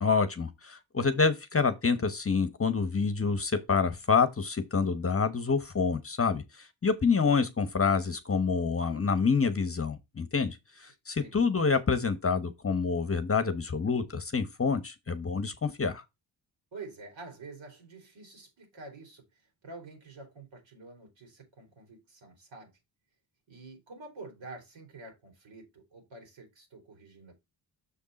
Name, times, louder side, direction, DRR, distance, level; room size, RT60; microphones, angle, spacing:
voice 1, 0.0-16.0, left 5 dB, 30° left, 1.0 m, -27 dB
voice 2, 16.7-19.2 19.6-22.7 23.5-27.3, right 3 dB, 70° right, 3.7 m, -48 dB
6.7 x 5.2 x 4.1 m
cardioid pair, 80°, 48 cm